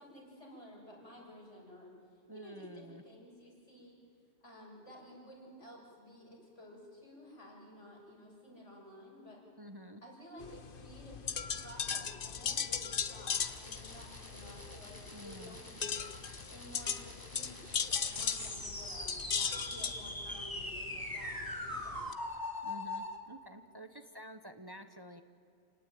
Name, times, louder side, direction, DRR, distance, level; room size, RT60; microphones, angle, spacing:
voice 1, 0.0-2.0 2.3-4.0 4.4-9.4 10.0-11.2 11.6-16.1 16.5-17.7 18.1-22.1, equal, 85° left, -3 dB, 7.2 m, -53 dB
voice 2, 2.3-3.0 9.6-10.0 15.1-15.6 22.6-25.2, equal, 20° right, 8 dB, 1.0 m, -50 dB
sound 1, 10.4-22.1, left 6 dB, 50° left, 1.1 m, -38 dB
sound 2, 13.4-23.2, left 1 dB, 15° left, 2.3 m, -43 dB
28.5 x 18.5 x 9.2 m, 2.5 s
omnidirectional pair, 1.2 m